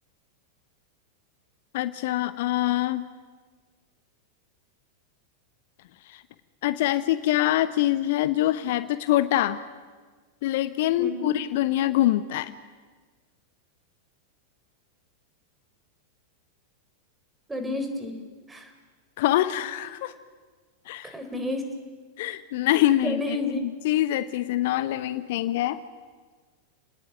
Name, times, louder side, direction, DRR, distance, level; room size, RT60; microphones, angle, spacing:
voice 1, 1.7-3.1 6.1-6.2 6.6-9.6 10.4-12.5 19.2-20.1 20.9-21.1 22.2-25.8, left 14 dB, 50° left, 14 dB, 0.9 m, -25 dB
voice 2, 11.0-11.3 17.5-18.2 18.5-18.7 21.0-21.7 22.9-23.6, left 1 dB, 10° right, 6 dB, 4.3 m, -31 dB
30.0 x 19.0 x 9.1 m, 1.5 s
figure-of-eight pair, 90°, 0 cm